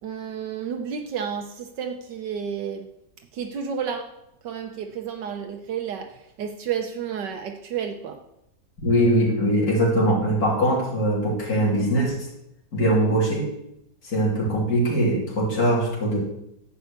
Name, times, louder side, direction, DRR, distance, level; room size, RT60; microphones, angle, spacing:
voice 1, 0.0-2.9 3.3-4.1 4.4-8.2, right 7 dB, 75° right, 4 dB, 1.5 m, -31 dB
voice 2, 8.8-12.2 12.7-13.5 14.0-16.2, right 1 dB, 55° left, -5 dB, 3.7 m, -21 dB
11.5 x 5.6 x 8.1 m, 0.80 s
omnidirectional pair, 1.9 m